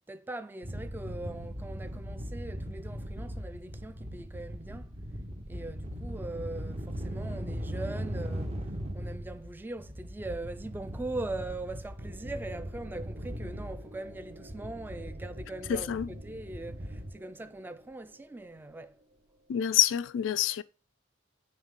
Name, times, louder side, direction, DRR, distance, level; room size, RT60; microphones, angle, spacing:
voice 1, 0.1-4.9 5.5-8.6 8.9-19.0, right 2 dB, 10° right, 0.3 m, -41 dB
sound 1, 0.6-17.1, equal, 35° right, 0.8 m, -39 dB
sound 2, 12.0-20.1, equal, 80° right, 1.2 m, -54 dB
voice 2, 15.7-16.1 19.5-20.6, left 11 dB, 70° left, 0.3 m, -27 dB
8.9 x 3.1 x 3.6 m
head